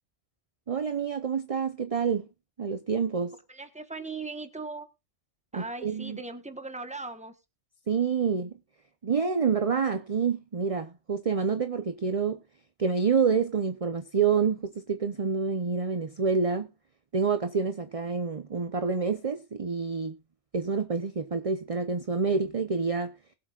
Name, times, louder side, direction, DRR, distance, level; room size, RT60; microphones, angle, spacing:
voice 1, 0.7-2.3 2.6-3.3 5.5-6.2 7.9-8.6 9.0-12.4 12.8-16.7 17.1-20.2 20.5-23.1, right 5 dB, 35° right, 0.7 m, -27 dB
voice 2, 3.5-4.9 5.5-7.3, right 3 dB, 5° right, 1.2 m, -38 dB
21.0 x 7.9 x 2.4 m
omnidirectional pair, 1.2 m